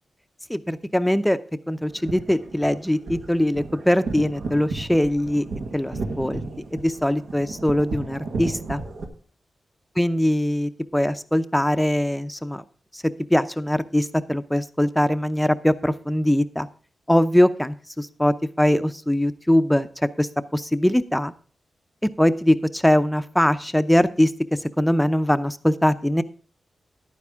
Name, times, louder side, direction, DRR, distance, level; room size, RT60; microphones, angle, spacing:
voice 1, 0.5-1.4 1.7-5.5 5.7-6.4 6.7-8.8 10.0-12.6 12.9-13.0 13.3-16.7 17.1-21.3 22.2-24.3 24.8-26.2, left 1 dB, 5° left, 11 dB, 0.6 m, -22 dB
sound 1, 1.8-9.0, right 3 dB, 80° right, 1.6 m, -33 dB
11.0 x 9.4 x 3.6 m, 0.42 s
wide cardioid pair, 90°, 0 cm